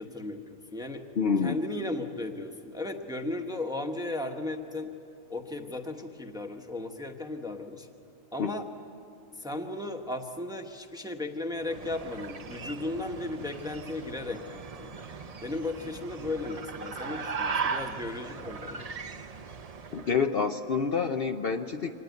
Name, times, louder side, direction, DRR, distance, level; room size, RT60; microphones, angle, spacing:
voice 1, 0.0-1.1 1.4-4.9 5.3-7.9 8.3-8.7 9.4-14.9 15.4-18.9, left 2 dB, 5° right, 4 dB, 1.0 m, -35 dB
voice 2, 1.2-1.6 8.4-8.5 19.9-21.9, left 5 dB, 50° left, 5 dB, 0.9 m, -27 dB
sound 1, 11.5-20.2, right 5 dB, 40° right, 0.6 m, -38 dB
24.5 x 18.5 x 9.4 m, 2.6 s
omnidirectional pair, 1.4 m